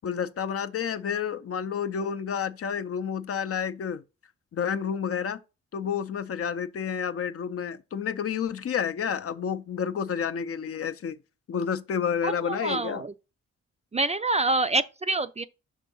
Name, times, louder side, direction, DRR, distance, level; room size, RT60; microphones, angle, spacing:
voice 1, 0.0-4.0 4.5-5.4 5.7-11.2 11.5-13.0, left 7 dB, 50° left, 0.6 m, -30 dB
voice 2, 12.2-13.1 13.9-15.4, right 2 dB, 25° right, 0.4 m, -26 dB
5.6 x 3.5 x 5.3 m
cardioid pair, 80°, 29 cm